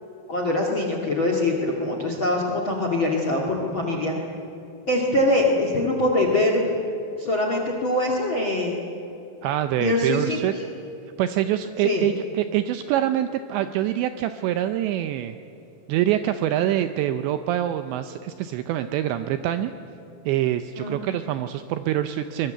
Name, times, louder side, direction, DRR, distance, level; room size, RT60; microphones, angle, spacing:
voice 1, 0.3-4.1 4.9-6.6 7.2-8.8 9.8-10.6 11.8-12.1 20.2-20.3 20.8-21.0, left 1 dB, 45° left, 2 dB, 1.6 m, -23 dB
voice 2, 9.4-10.5 11.2-15.4 15.9-19.7 20.3-22.5, right 12 dB, 80° right, 9 dB, 2.6 m, -25 dB
24.0 x 21.5 x 7.9 m, 2.9 s
omnidirectional pair, 5.8 m